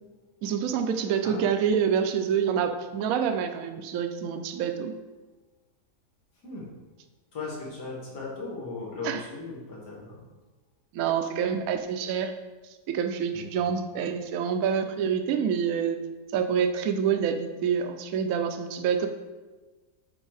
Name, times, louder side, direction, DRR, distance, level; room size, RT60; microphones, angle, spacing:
voice 1, 0.4-4.9 9.0-9.2 10.9-12.3 12.9-16.0 16.3-19.1, right 7 dB, 70° right, 7 dB, 1.0 m, -27 dB
voice 2, 1.2-1.6 6.4-6.7 7.3-10.3 13.3-13.6, left 3 dB, 90° left, -5 dB, 2.5 m, -38 dB
7.2 x 4.2 x 4.9 m, 1.2 s
omnidirectional pair, 1.7 m